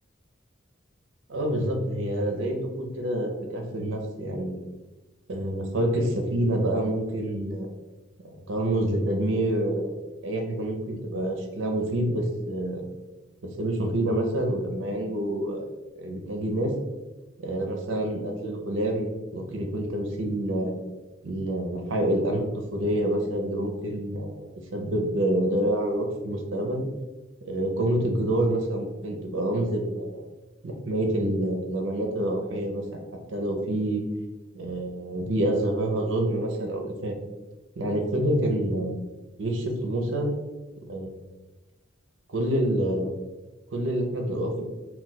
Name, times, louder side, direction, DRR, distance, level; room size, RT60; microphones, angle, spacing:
voice 1, 1.3-4.6 5.3-7.7 8.3-10.0 10.2-12.8 13.4-15.7 16.0-16.7 17.4-20.8 21.2-22.5 22.7-26.8 27.4-30.2 30.6-33.0 33.3-34.0 34.5-37.1 37.8-39.1 39.4-40.3 40.8-41.2 42.3-43.1 43.7-44.6, right 1 dB, 70° right, 3 dB, 0.5 m, -27 dB
2.3 x 2.2 x 3.9 m, 1.1 s
head